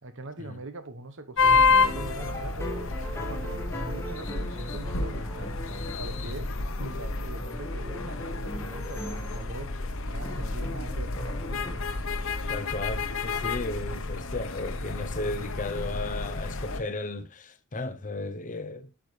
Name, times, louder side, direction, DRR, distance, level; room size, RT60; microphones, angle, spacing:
voice 1, 0.0-3.0 3.3-5.6 6.0-11.8, right 2 dB, 60° right, 1.1 m, -42 dB
sound 1, 1.4-16.8, left 4 dB, 60° left, 0.9 m, -29 dB
sound 2, 1.4-6.5 6.8-9.5 10.2-11.7, equal, 10° left, 1.4 m, -40 dB
voice 2, 12.5-18.9, left 2 dB, 35° left, 0.8 m, -35 dB
9.0 x 6.4 x 3.3 m
head